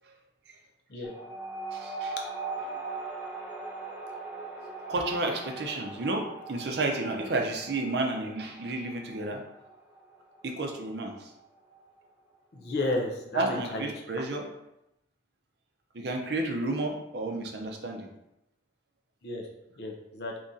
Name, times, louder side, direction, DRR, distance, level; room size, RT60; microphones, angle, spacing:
sound 1, 1.0-12.0, right 3 dB, 10° right, 0.6 m, -40 dB
voice 1, 1.7-2.2 4.9-9.4 10.4-11.3 13.3-14.5 15.9-18.1, right 2 dB, 70° right, 2 dB, 0.5 m, -31 dB
voice 2, 12.5-13.9 19.2-19.5 19.8-20.3, left 2 dB, 65° left, 0 dB, 0.6 m, -32 dB
2.9 x 2.6 x 3.6 m, 0.87 s
head